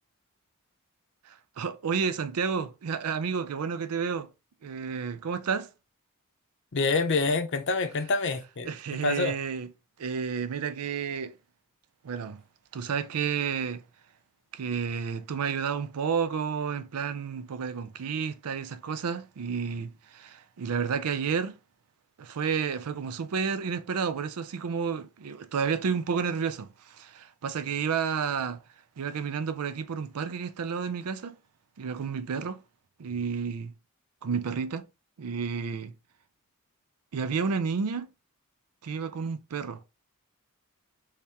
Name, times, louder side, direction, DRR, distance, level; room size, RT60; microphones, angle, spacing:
voice 1, 1.2-4.3 4.6-5.7 8.6-9.7 10.0-11.4 12.0-12.4 12.7-13.8 14.5-21.5 22.2-28.6 29.0-31.4 31.8-32.6 33.0-33.7 34.2-34.9 35.2-35.9 37.1-38.1 38.8-39.8, right 6 dB, 90° right, 0.5 m, -31 dB
voice 2, 6.7-9.3, left 4 dB, 55° left, 0.6 m, -27 dB
3.4 x 3.2 x 2.8 m
head